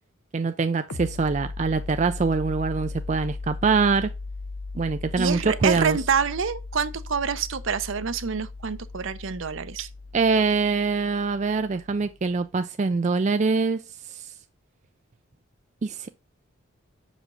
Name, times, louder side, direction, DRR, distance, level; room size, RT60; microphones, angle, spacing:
voice 1, 0.3-4.1 4.7-6.0 10.1-13.8 14.1-14.3 15.8-16.1, right 4 dB, 35° right, 0.3 m, -24 dB
sound 1, 0.9-12.2, left 3 dB, 85° left, 0.7 m, -37 dB
voice 2, 5.2-9.9, right 6 dB, 65° right, 0.6 m, -27 dB
6.4 x 5.0 x 3.7 m
head